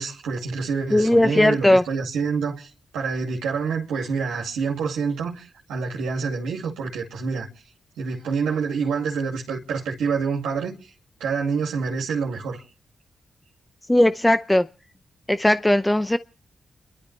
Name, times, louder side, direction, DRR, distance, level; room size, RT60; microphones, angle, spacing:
voice 1, 0.0-2.7 2.9-7.5 8.0-10.9 11.2-12.6, right 5 dB, 90° right, 2.4 m, -27 dB
voice 2, 0.9-1.8 13.9-14.7 15.3-16.2, left 1 dB, 15° left, 0.7 m, -18 dB
29.5 x 12.5 x 3.3 m
supercardioid pair, 40°, 0 cm